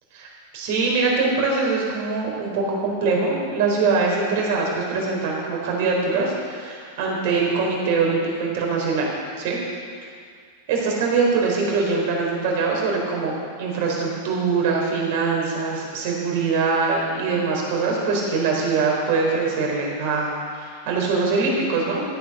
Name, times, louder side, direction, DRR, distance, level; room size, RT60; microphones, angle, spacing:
voice 1, 0.5-9.1 9.4-9.6 10.7-13.3 13.6-22.0, right 4 dB, 55° right, -2 dB, 4.1 m, -23 dB
14.0 x 8.5 x 6.6 m, 2.2 s
figure-of-eight pair, 90°, 0 cm